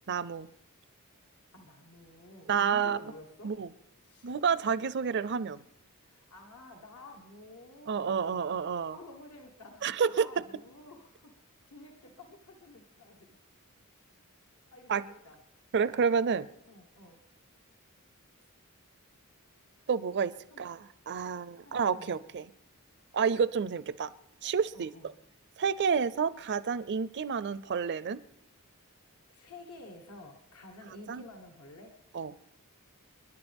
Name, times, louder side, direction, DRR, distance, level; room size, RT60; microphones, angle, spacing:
voice 1, 0.1-0.5 2.5-3.0 3.4-3.7 4.2-5.6 7.9-9.0 9.8-10.3 14.9-15.0 15.7-16.5 19.9-22.5 23.1-24.1 24.4-24.9 25.6-28.2 31.1-31.2 32.1-32.3, right 6 dB, 50° right, 17 dB, 0.5 m, -29 dB
voice 2, 1.5-3.5 4.0-4.3 6.0-8.4 8.9-11.3 11.7-13.3 14.7-15.4 16.7-17.2 20.5-20.6 21.6-22.2 24.7-25.1 29.3-31.9, left 2 dB, 85° left, 2 dB, 1.5 m, -51 dB
29.0 x 11.0 x 3.5 m, 0.80 s
head